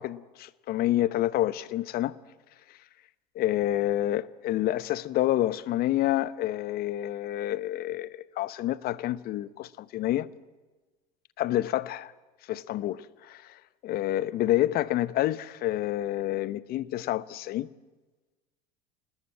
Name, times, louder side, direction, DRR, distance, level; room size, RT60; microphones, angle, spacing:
voice 1, 0.0-2.2 3.3-10.3 11.4-12.1 12.5-17.7, left 14 dB, 50° left, 1.0 m, -28 dB
28.0 x 19.5 x 8.8 m
hypercardioid pair, 70°, 21 cm